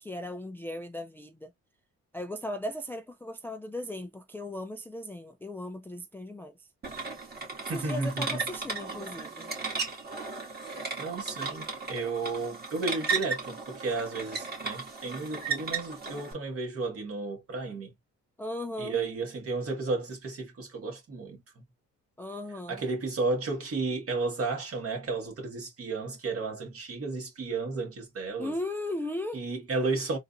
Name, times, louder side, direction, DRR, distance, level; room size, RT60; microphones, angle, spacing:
voice 1, 0.0-1.5 2.1-6.7 7.7-9.5 18.4-19.0 22.2-22.8 28.4-29.4, left 1 dB, 5° left, 0.4 m, -37 dB
sound 1, 6.8-16.3, right 5 dB, 30° right, 1.9 m, -35 dB
voice 2, 7.6-8.4 11.0-17.9 18.8-21.4 22.7-28.6 29.3-30.2, right 3 dB, 50° right, 1.8 m, -33 dB
3.7 x 2.5 x 2.5 m
cardioid pair, 90°, 30 cm